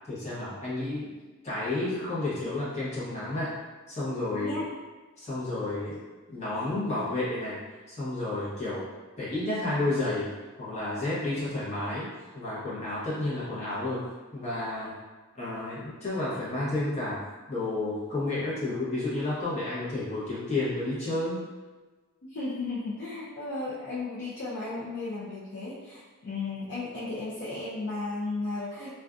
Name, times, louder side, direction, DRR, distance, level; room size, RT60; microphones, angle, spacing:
voice 1, 0.1-1.1 1.4-3.5 3.9-4.6 5.2-6.0 6.3-7.6 7.9-8.9 9.2-10.3 10.6-12.1 12.3-14.9 15.3-17.2 17.5-21.4, left 2 dB, 30° left, -9 dB, 0.9 m, -31 dB
voice 2, 22.2-28.9, left 3 dB, 50° left, -10 dB, 0.5 m, -34 dB
2.5 x 2.3 x 2.4 m, 1.3 s
head